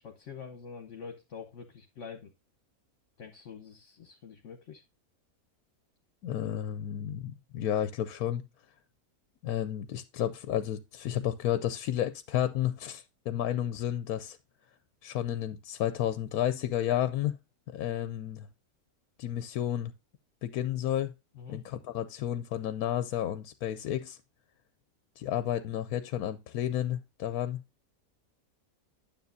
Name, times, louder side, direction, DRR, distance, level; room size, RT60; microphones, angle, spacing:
voice 1, 0.0-2.3 3.2-4.8 21.4-21.6, left 6 dB, 55° left, 1.2 m, -45 dB
voice 2, 6.2-8.4 9.4-14.4 15.0-17.3 17.7-18.5 19.2-19.9 20.4-21.1 21.5-24.2 25.2-27.6, left 11 dB, 80° left, 1.0 m, -31 dB
9.5 x 7.2 x 2.5 m
omnidirectional pair, 1.6 m